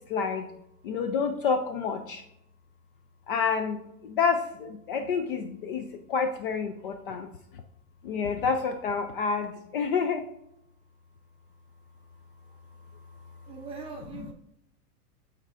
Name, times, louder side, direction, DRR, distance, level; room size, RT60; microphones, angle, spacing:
voice 1, 0.1-0.4 0.8-2.2 3.3-3.8 4.0-7.3 8.0-10.2, left 5 dB, 40° left, 7 dB, 0.4 m, -28 dB
voice 2, 13.5-14.3, right 5 dB, 10° right, 1 dB, 0.6 m, -41 dB
12.0 x 4.5 x 2.5 m, 0.80 s
supercardioid pair, 150°, 46 cm